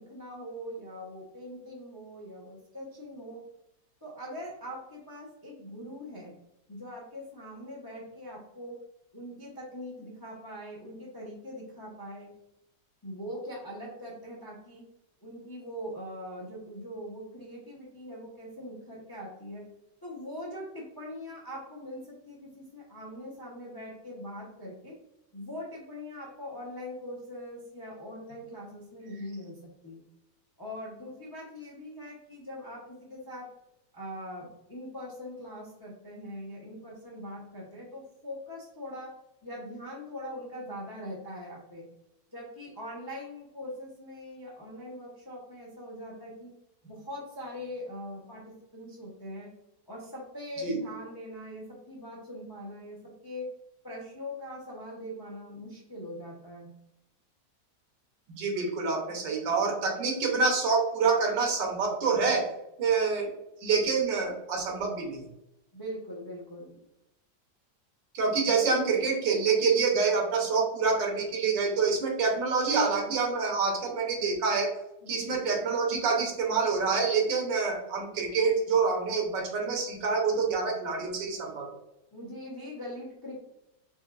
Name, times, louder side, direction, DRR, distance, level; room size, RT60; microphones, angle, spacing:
voice 1, 0.0-3.4 4.0-6.3 6.7-8.8 9.1-12.3 13.0-14.8 15.2-19.6 20.0-25.0 25.3-30.0 30.6-33.5 33.9-39.1 39.4-41.9 42.3-46.5 46.8-49.5 49.9-53.5 53.8-56.7 65.7-66.7 75.0-75.4 82.1-83.4, equal, 25° left, -4 dB, 0.4 m, -42 dB
voice 2, 58.3-62.5 62.8-63.3 63.6-65.2 68.1-74.7 75.1-81.7, right 4 dB, 80° right, 1 dB, 1.6 m, -27 dB
4.3 x 3.2 x 2.4 m, 0.87 s
omnidirectional pair, 2.0 m